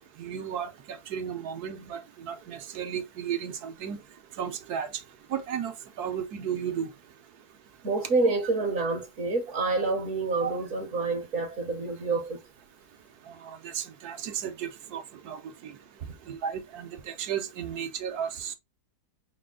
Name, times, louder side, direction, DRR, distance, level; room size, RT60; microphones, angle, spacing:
voice 1, 0.2-4.0 4.4-5.0 5.3-6.9 10.4-10.6 13.3-15.8 16.3-18.5, right 8 dB, 80° right, 1.2 m, -34 dB
voice 2, 7.8-12.4, right 3 dB, 60° right, 1.1 m, -28 dB
5.1 x 2.3 x 3.6 m
omnidirectional pair, 1.7 m